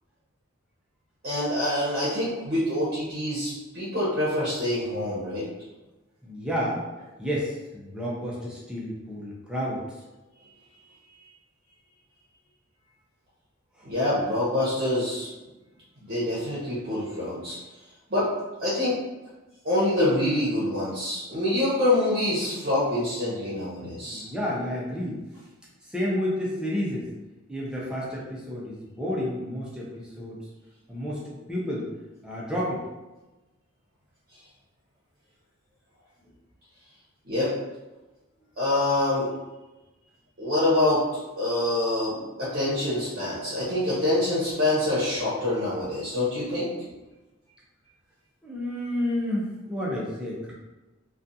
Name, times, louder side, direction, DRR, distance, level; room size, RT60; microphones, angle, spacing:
voice 1, 1.2-5.5 13.8-15.3 16.0-17.6 18.1-18.3 18.6-19.0 19.6-24.3 37.2-37.5 38.6-39.3 40.4-41.0 41.4-46.7, left 1 dB, 50° right, -8 dB, 0.8 m, -26 dB
voice 2, 6.2-6.8 7.2-9.8 24.0-25.2 25.9-27.1 27.5-30.4 30.9-31.9 32.2-32.8 46.4-46.5 48.4-50.5, equal, 5° right, -6 dB, 0.5 m, -30 dB
2.4 x 2.3 x 2.6 m, 1.1 s
head